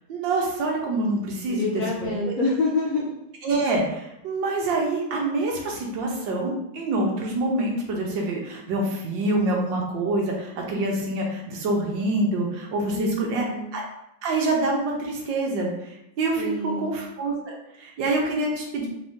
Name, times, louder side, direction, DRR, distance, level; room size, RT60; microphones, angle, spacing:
voice 1, 0.1-1.7 2.0-2.3 3.4-13.4 13.7-13.8 14.2-18.9, right 2 dB, 75° right, -1 dB, 1.5 m, -26 dB
voice 2, 1.5-3.1 12.9-13.7 16.4-17.0, left 2 dB, 65° left, -4 dB, 0.9 m, -27 dB
4.3 x 3.5 x 2.7 m, 0.83 s
omnidirectional pair, 2.1 m